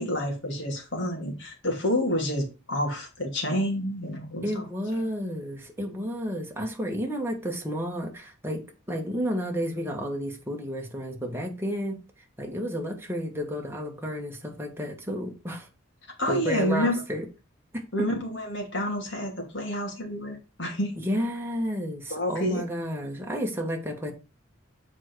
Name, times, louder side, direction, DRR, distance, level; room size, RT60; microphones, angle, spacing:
voice 1, 0.0-4.6 5.0-5.1 16.2-17.0 17.9-20.9 22.1-22.6, left 1 dB, 60° left, 2.8 m, -29 dB
voice 2, 4.4-12.0 12.4-15.7 16.3-17.2 17.7-17.8 21.0-24.1, equal, 10° right, 1.6 m, -31 dB
7.5 x 4.9 x 4.6 m
head